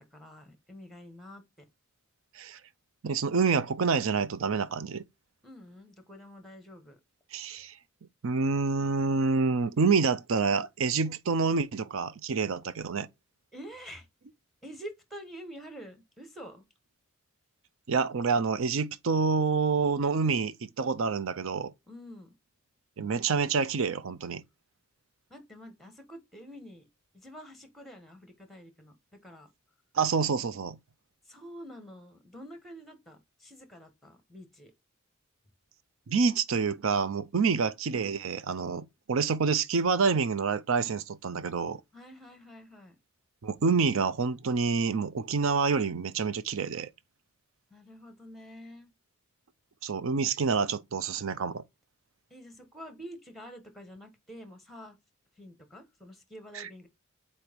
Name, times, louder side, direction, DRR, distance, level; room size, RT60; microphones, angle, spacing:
voice 1, 0.0-1.7 5.4-7.0 13.5-14.1 14.6-16.6 21.9-22.3 25.3-26.8 27.1-29.5 31.2-34.7 37.3-37.6 41.9-43.0 47.7-48.9 52.3-55.0 55.4-56.9, equal, ahead, 1.2 m, -47 dB
voice 2, 3.0-5.0 7.3-7.8 8.2-13.1 17.9-21.7 23.0-24.4 29.9-30.8 36.1-41.8 43.4-46.9 49.8-51.6 56.5-56.7, right 5 dB, 65° right, 0.5 m, -27 dB
4.5 x 4.4 x 5.1 m
head